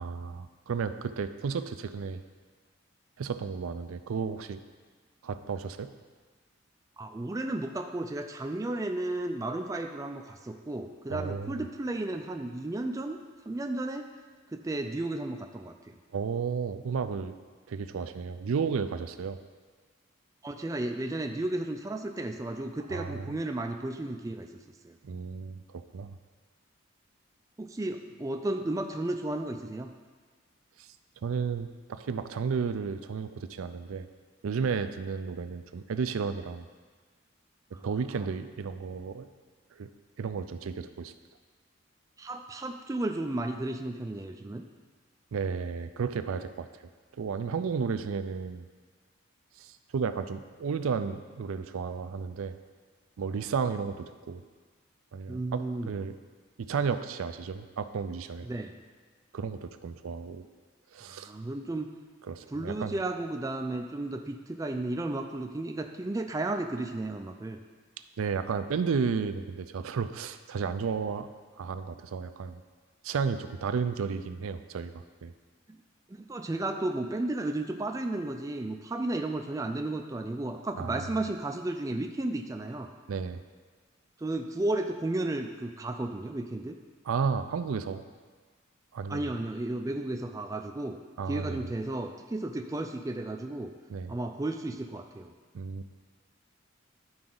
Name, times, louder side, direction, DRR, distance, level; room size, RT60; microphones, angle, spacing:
voice 1, 0.0-2.2 3.2-4.6 5.2-5.9 11.1-11.6 16.1-17.4 17.7-19.4 22.9-23.3 25.0-26.2 30.8-30.9 31.2-34.1 34.4-36.7 37.8-39.3 39.8-39.9 40.2-41.1 45.3-46.7 47.2-48.6 49.6-52.6 53.2-54.4 55.1-56.1 56.6-58.5 59.3-60.5 60.9-61.3 62.3-63.0 68.2-71.3 71.6-72.6 73.0-75.3 80.8-81.0 83.1-83.4 87.1-88.0 88.9-89.4 91.2-91.7 93.9-94.2 95.5-95.9, right 5 dB, 85° right, 10 dB, 0.4 m, -33 dB
voice 2, 7.0-13.2 13.5-14.1 14.5-15.9 20.4-24.5 24.8-25.0 27.6-29.9 37.7-37.9 38.1-38.3 42.2-44.6 55.3-55.9 58.4-58.8 61.1-61.9 62.5-67.6 76.1-82.9 84.2-86.8 89.1-91.0 91.3-93.7 94.1-95.3, right 2 dB, 15° right, 5 dB, 0.3 m, -33 dB
11.0 x 4.8 x 3.9 m, 1.5 s
head